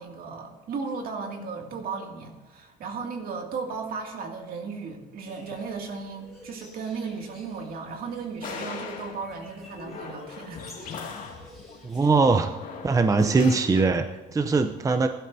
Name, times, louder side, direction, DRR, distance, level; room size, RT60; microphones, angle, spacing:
voice 1, 0.0-10.7, right 5 dB, 60° right, 2 dB, 2.3 m, -35 dB
sound 1, 5.3-12.4, left 1 dB, ahead, 4.3 m, -52 dB
sound 2, 8.4-13.8, left 5 dB, 50° left, 2.1 m, -38 dB
voice 2, 11.8-12.6 12.8-15.1, right 4 dB, 20° right, 8 dB, 0.6 m, -21 dB
17.0 x 11.5 x 2.7 m, 1.2 s
cardioid pair, 110°, 17 cm